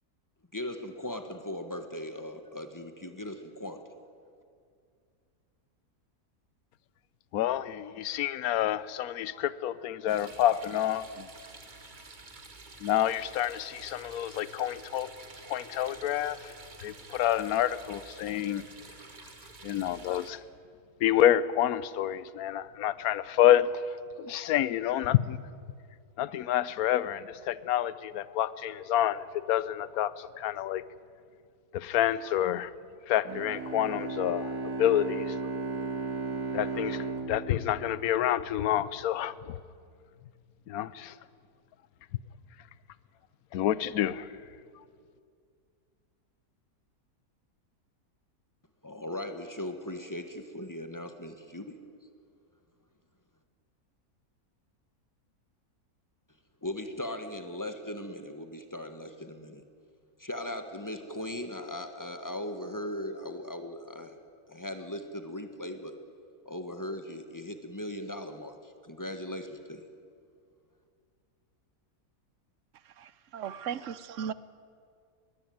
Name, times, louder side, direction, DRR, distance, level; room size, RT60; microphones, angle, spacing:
voice 1, 0.5-3.8 48.8-51.8 56.6-59.6 60.2-64.2 64.5-65.9 66.4-69.8, left 1 dB, 15° left, 7 dB, 1.4 m, -38 dB
voice 2, 7.3-11.3 12.8-15.1 15.5-16.5 16.8-18.6 19.6-20.4 21.0-25.4 26.2-30.8 31.7-32.7 33.1-34.5 34.8-35.4 36.5-39.6 40.7-41.1 43.5-44.3, left 11 dB, 75° left, 18 dB, 1.1 m, -28 dB
sound 1, 10.1-20.3, right 3 dB, 30° right, 1.6 m, -49 dB
Bowed string instrument, 33.2-38.8, right 4 dB, 80° right, 2.4 m, -35 dB
voice 3, 73.0-74.3, right 8 dB, 60° right, 16 dB, 1.0 m, -37 dB
21.5 x 16.5 x 9.3 m, 2.3 s
omnidirectional pair, 1.6 m